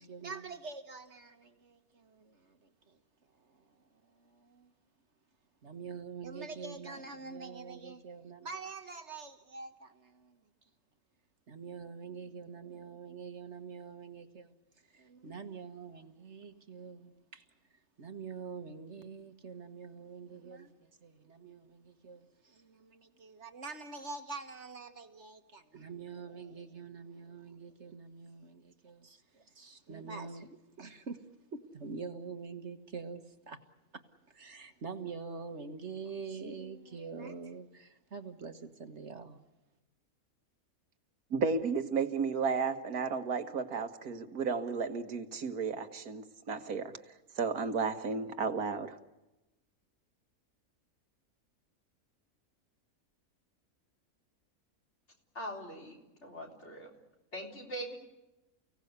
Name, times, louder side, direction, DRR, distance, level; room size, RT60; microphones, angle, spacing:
voice 1, 0.0-3.0 3.4-3.7 4.0-4.7 5.6-10.4 11.5-14.5 14.9-17.5 18.0-31.2 31.5-33.6 33.9-34.0 34.3-39.5, right 5 dB, 50° right, 7 dB, 1.7 m, -45 dB
voice 2, 41.3-46.9 47.4-49.0, right 5 dB, 90° right, 7 dB, 1.9 m, -33 dB
voice 3, 55.3-56.9 57.3-58.0, right 1 dB, 50° left, 1 dB, 4.1 m, -42 dB
30.0 x 17.5 x 8.2 m, 1.0 s
omnidirectional pair, 1.5 m